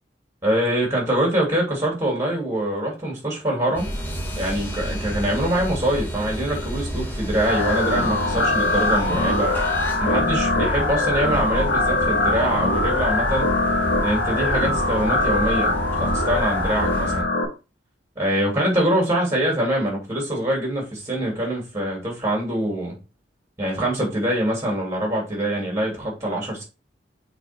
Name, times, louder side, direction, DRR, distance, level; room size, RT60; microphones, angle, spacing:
voice 1, 0.4-3.9 4.4-9.5 10.0-13.5 14.0-15.7 16.0-17.2 18.2-23.0 23.6-26.6, right 1 dB, 15° right, -2 dB, 2.8 m, -24 dB
sound 1, 3.7-17.2, equal, 10° left, 1.6 m, -30 dB
sound 2, 7.5-17.5, left 2 dB, 80° left, 1.7 m, -22 dB
6.0 x 4.0 x 4.4 m, 0.30 s
head